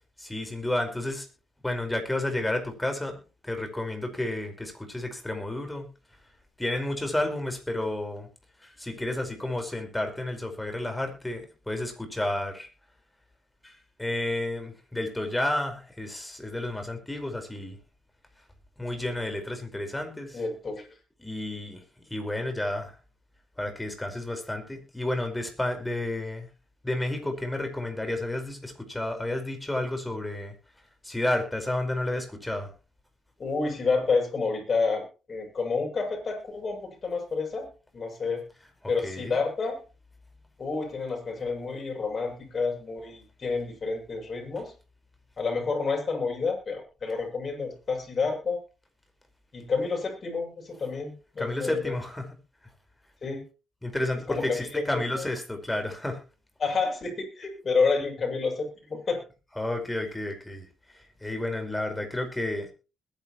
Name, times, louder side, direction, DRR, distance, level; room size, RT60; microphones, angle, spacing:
voice 1, 0.2-1.3 1.6-3.2 3.4-5.9 6.6-8.3 8.6-12.7 13.6-13.7 14.0-17.8 18.8-20.4 21.2-21.8 22.1-22.9 23.6-26.5 26.8-30.5 31.0-32.7 39.0-39.4 51.4-52.3 53.8-56.2 59.6-60.7 61.2-62.7, left 1 dB, 10° left, 5 dB, 5.0 m, -31 dB
voice 2, 20.3-20.9 33.4-37.7 37.9-38.4 38.9-39.8 40.6-44.7 45.4-48.6 49.5-52.0 53.2-53.4 54.3-54.8 55.2-55.3 56.6-59.2, left 4 dB, 40° left, 2 dB, 7.8 m, -29 dB
21.0 x 10.5 x 3.1 m, 0.33 s
cardioid pair, 90°, 0 cm